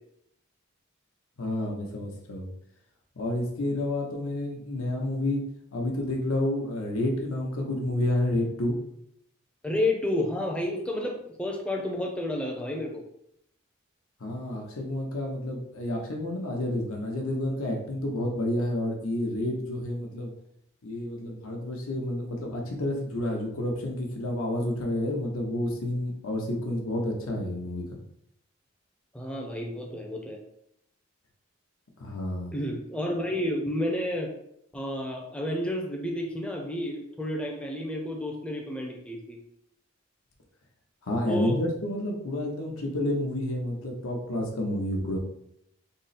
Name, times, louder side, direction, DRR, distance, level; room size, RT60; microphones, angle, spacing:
voice 1, 1.4-2.5 3.2-5.4 5.7-8.7 14.2-20.3 20.8-28.0 32.0-32.5 41.0-45.2, left 1 dB, 90° left, 1 dB, 0.8 m, -30 dB
voice 2, 9.6-13.0 29.1-30.4 32.5-34.3 34.7-39.4 41.3-41.6, left 1 dB, 5° left, -1 dB, 0.5 m, -30 dB
3.7 x 2.0 x 4.1 m, 0.76 s
head